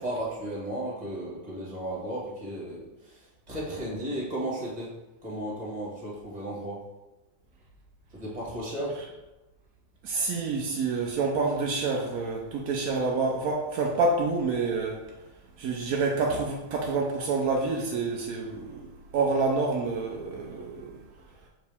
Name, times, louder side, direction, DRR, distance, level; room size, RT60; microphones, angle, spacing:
voice 1, 0.0-3.2 3.5-4.9 5.2-6.8 8.1-9.0, right 1 dB, 20° right, -5 dB, 2.0 m, -34 dB
voice 2, 10.0-15.0 15.6-18.9 19.1-20.9, right 3 dB, 75° right, 0 dB, 0.8 m, -27 dB
5.9 x 4.7 x 3.5 m, 1.0 s
omnidirectional pair, 2.3 m